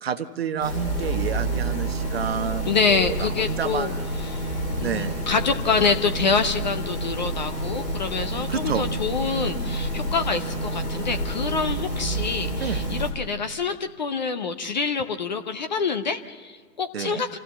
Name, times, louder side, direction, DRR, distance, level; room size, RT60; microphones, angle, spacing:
voice 1, 0.0-3.3 3.6-4.1 4.8-5.3 8.5-8.9 12.6-12.8 16.9-17.2, right 7 dB, 40° right, 10 dB, 0.9 m, -29 dB
sound 1, 0.6-13.1, right 1 dB, 80° left, 5.8 m, -28 dB
voice 2, 2.6-3.9 4.3-4.4 4.8-17.4, left 5 dB, 30° left, 8 dB, 0.7 m, -26 dB
26.0 x 15.5 x 7.1 m, 1.5 s
figure-of-eight pair, 135°, 48 cm